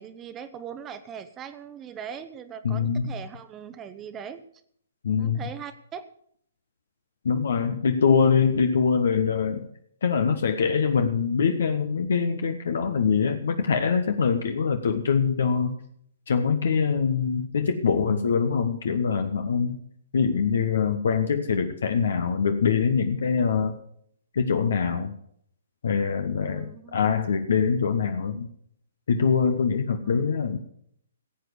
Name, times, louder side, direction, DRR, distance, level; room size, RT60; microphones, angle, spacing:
voice 1, 0.0-4.4 5.2-6.1 26.4-27.0 30.0-30.3, right 8 dB, 20° right, 10 dB, 1.0 m, -40 dB
voice 2, 2.6-3.1 5.0-5.4 7.2-9.7 10.0-15.8 16.3-19.8 20.1-23.8 24.3-25.1 25.8-28.5 29.1-30.6, left 6 dB, 65° left, 7 dB, 1.3 m, -24 dB
16.0 x 8.1 x 6.8 m, 0.66 s
figure-of-eight pair, 130°, 0 cm